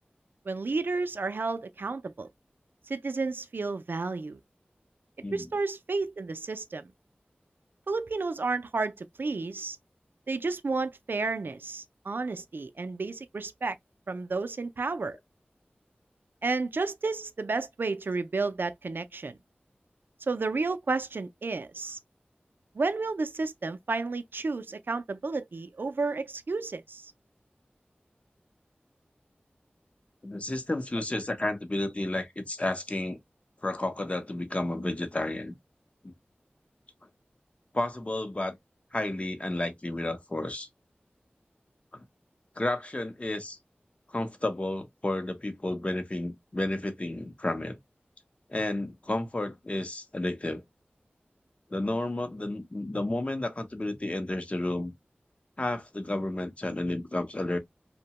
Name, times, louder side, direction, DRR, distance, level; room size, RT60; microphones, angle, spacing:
voice 1, 0.5-2.3 2.9-4.4 5.3-6.9 7.9-9.8 10.3-13.8 14.1-15.2 16.4-19.4 20.3-22.0 22.7-27.1, right 3 dB, 65° right, 0.4 m, -31 dB
voice 2, 30.2-33.2 33.6-35.5 36.0-36.1 37.7-38.6 38.9-40.7 41.9-42.0 42.6-43.6 44.1-47.8 48.5-50.6 51.7-54.9 55.6-57.6, left 1 dB, 35° left, 0.6 m, -31 dB
2.8 x 2.1 x 2.8 m
wide cardioid pair, 45°, 4 cm